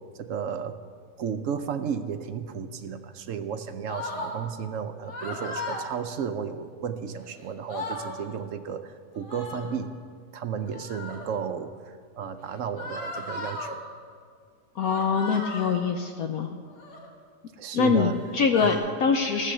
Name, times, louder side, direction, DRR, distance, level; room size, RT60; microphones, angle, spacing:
voice 1, 0.2-0.7 1.2-9.9 10.3-13.8 17.6-18.2 18.6-18.7, right 7 dB, 65° right, 9 dB, 0.8 m, -33 dB
sound 1, 3.9-4.3 5.0-5.8 7.2-7.3 7.5-8.1 9.2-9.7 10.7-11.3 12.8-13.8 14.8-15.8 16.7-17.1 18.0-18.8, left 2 dB, 90° left, 2.5 m, -36 dB
voice 2, 14.8-16.5 17.7-19.5, left 5 dB, 70° left, 4 dB, 1.1 m, -24 dB
15.0 x 7.6 x 6.5 m, 2.1 s
omnidirectional pair, 1.7 m